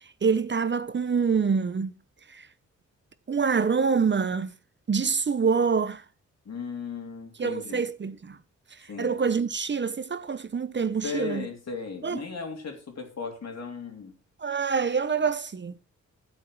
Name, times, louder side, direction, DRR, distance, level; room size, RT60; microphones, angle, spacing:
voice 1, 0.2-2.0 2.3-2.5 3.3-4.5 4.9-6.0 7.4-8.4 8.8-11.5 12.0-12.2 14.4-15.7, right 5 dB, 40° right, 0.8 m, -26 dB
voice 2, 6.5-7.8 8.9-9.1 11.0-14.1, left 5 dB, 60° left, 3.5 m, -36 dB
12.0 x 8.5 x 4.7 m
cardioid pair, 85°, 30 cm